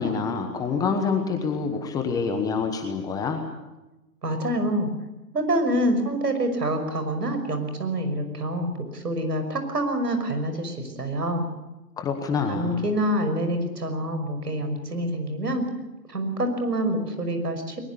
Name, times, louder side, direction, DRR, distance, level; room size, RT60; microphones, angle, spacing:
voice 1, 0.0-3.4 12.0-12.8, left 5 dB, 10° left, 6 dB, 1.0 m, -26 dB
voice 2, 4.2-4.9 5.3-11.5 12.5-15.6 16.1-17.8, right 1 dB, 80° right, 7 dB, 5.9 m, -26 dB
21.0 x 21.0 x 8.3 m, 1.0 s
hypercardioid pair, 145°, 47 cm